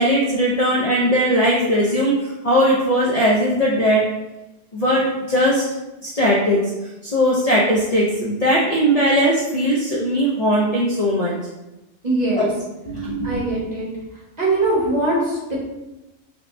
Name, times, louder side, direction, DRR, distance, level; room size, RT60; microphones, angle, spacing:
voice 1, 0.0-4.0 4.7-5.6 6.0-6.6 7.0-11.3 12.4-12.5 12.9-13.4, equal, 65° left, -4 dB, 0.4 m, -19 dB
voice 2, 12.0-12.5 13.2-13.9 14.4-15.6, right 2 dB, 35° right, -6 dB, 1.0 m, -21 dB
4.5 x 2.1 x 2.6 m, 1.0 s
omnidirectional pair, 1.4 m